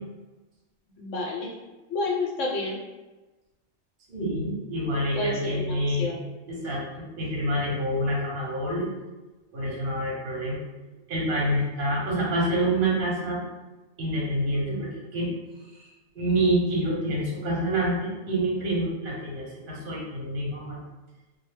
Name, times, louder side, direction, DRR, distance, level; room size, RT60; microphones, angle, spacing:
voice 1, 1.0-1.5 1.9-2.8 5.1-6.3, left 2 dB, 75° left, -2 dB, 1.0 m, -30 dB
voice 2, 4.1-6.1 6.5-8.9 9.5-10.6 11.1-13.4 14.0-15.3 16.1-20.8, right 1 dB, 55° right, -4 dB, 0.7 m, -27 dB
2.1 x 2.1 x 3.1 m, 1.1 s
omnidirectional pair, 1.3 m